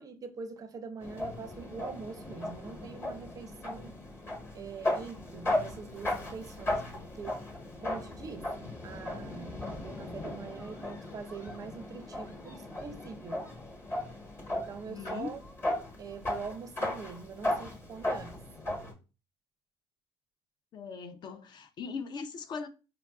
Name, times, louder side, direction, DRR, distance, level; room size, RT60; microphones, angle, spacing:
voice 1, 0.0-4.0 4.5-7.4 7.8-13.5 14.5-15.4 16.0-18.4, right 5 dB, 35° right, 0.4 m, -44 dB
sound 1, 1.0-18.9, left 1 dB, 25° left, 1.1 m, -36 dB
voice 2, 14.9-15.4 20.7-22.7, left 5 dB, 40° left, 0.4 m, -40 dB
4.6 x 2.4 x 2.3 m
cardioid pair, 125°, 11 cm